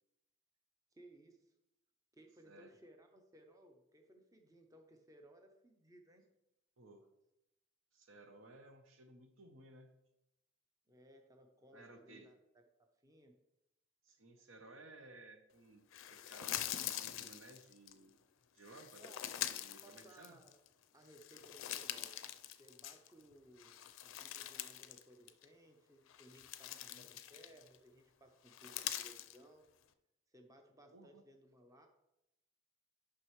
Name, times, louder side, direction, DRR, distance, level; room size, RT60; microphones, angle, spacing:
voice 1, 0.9-1.5 2.1-6.2 10.9-13.4 19.0-19.3 19.8-20.6 20.9-22.2 22.6-29.7 30.3-31.9, right 1 dB, 15° right, 4 dB, 0.6 m, -62 dB
voice 2, 6.8-7.1 7.9-9.9 11.7-12.3 14.0-15.8 16.1-18.2 18.5-19.1 19.6-20.4 26.7-27.1 30.9-31.2, right 2 dB, 80° right, 6 dB, 0.9 m, -58 dB
sound 1, 15.9-17.9 18.6-20.7 21.1-23.2 23.6-25.0 25.3-25.5 26.1-27.8 28.5-29.4, left 12 dB, 80° left, 0.4 m, -44 dB
9.6 x 5.6 x 3.1 m, 0.88 s
head